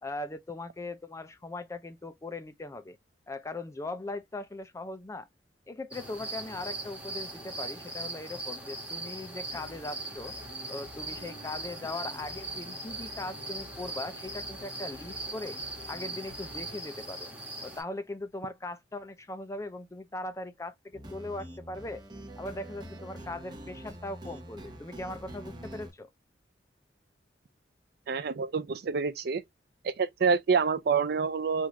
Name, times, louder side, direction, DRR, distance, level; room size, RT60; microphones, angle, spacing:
voice 1, 0.0-3.0 3.3-5.3 5.7-10.3 10.7-15.6 15.9-17.3 17.6-22.0 22.4-26.1, left 2 dB, 15° left, 0.4 m, -39 dB
sound 1, 5.9-17.8, right 2 dB, 5° right, 1.3 m, -40 dB
sound 2, 9.5-16.8, left 1 dB, 70° left, 0.9 m, -50 dB
sound 3, 20.9-25.9, right 1 dB, 25° right, 0.8 m, -45 dB
voice 2, 28.1-29.4 29.8-31.7, right 5 dB, 60° right, 0.4 m, -27 dB
3.5 x 2.5 x 2.8 m
head